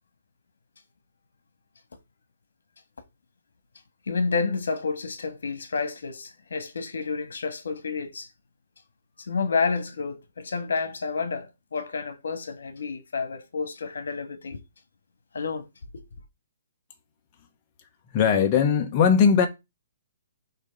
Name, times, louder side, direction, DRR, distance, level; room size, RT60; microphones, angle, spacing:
voice 1, 4.1-8.3 9.2-14.6 15.3-15.6 15.9-16.0, left 4 dB, 85° left, 1.4 m, -30 dB
voice 2, 18.1-19.5, left 6 dB, 30° left, 1.1 m, -19 dB
6.3 x 3.0 x 5.2 m
hypercardioid pair, 155°, 0 cm